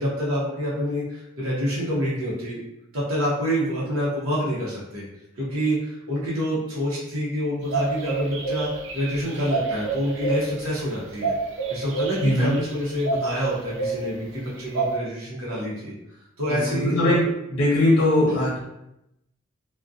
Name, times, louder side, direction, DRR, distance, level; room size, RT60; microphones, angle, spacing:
voice 1, 0.0-2.6 2.9-5.0 5.4-11.3 11.7-15.9 16.4-17.2 18.3-18.5, equal, 80° right, -6 dB, 0.7 m, -27 dB
sound 1, 7.7-15.0, right 4 dB, 60° right, 0.4 m, -29 dB
voice 2, 12.2-12.6 16.5-17.2 17.5-18.6, left 1 dB, 70° left, -6 dB, 0.7 m, -20 dB
2.5 x 2.1 x 2.3 m, 0.86 s
head